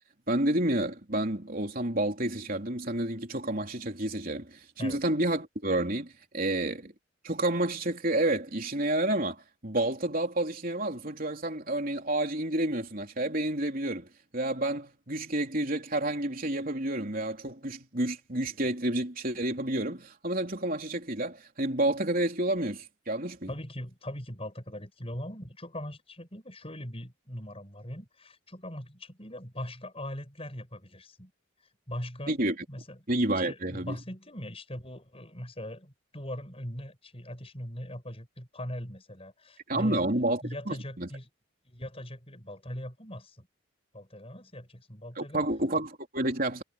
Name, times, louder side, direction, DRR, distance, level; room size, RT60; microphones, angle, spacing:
voice 1, 0.3-6.9 7.2-14.1 14.3-23.5 32.3-32.5 33.1-33.9 39.7-41.1 45.2-46.6, right 1 dB, 40° right, 3.9 m, -30 dB
voice 2, 23.5-31.3 31.9-32.4 32.7-33.0 33.3-40.1 40.4-41.3 41.7-43.5 43.9-45.4, left 1 dB, 30° left, 7.2 m, -40 dB
head